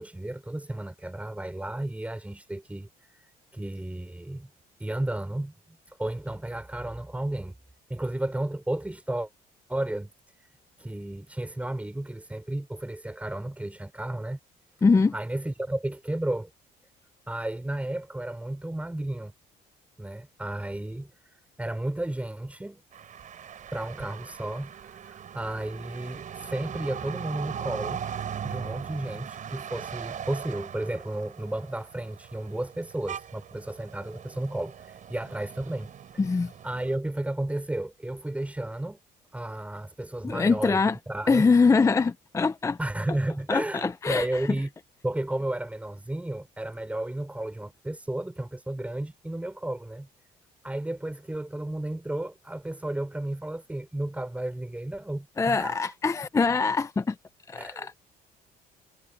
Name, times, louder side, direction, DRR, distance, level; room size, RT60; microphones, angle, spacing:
voice 1, 0.0-4.5 4.8-7.5 7.9-9.3 9.7-10.1 10.8-14.4 15.1-16.5 17.3-19.3 20.0-22.8 23.7-28.1 28.4-35.9 36.6-39.0 39.3-41.5 42.8-44.7 45.0-50.1 50.6-55.9 57.6-58.0, right 1 dB, 10° right, 5.1 m, -33 dB
voice 2, 14.8-15.1 36.2-36.5 40.2-41.0 41.3-42.8 43.5-44.3 55.4-57.2 57.5-57.9, left 4 dB, 20° left, 0.5 m, -23 dB
sound 1, 22.9-37.0, right 8 dB, 50° right, 4.1 m, -40 dB
cardioid pair, 110°, 17 cm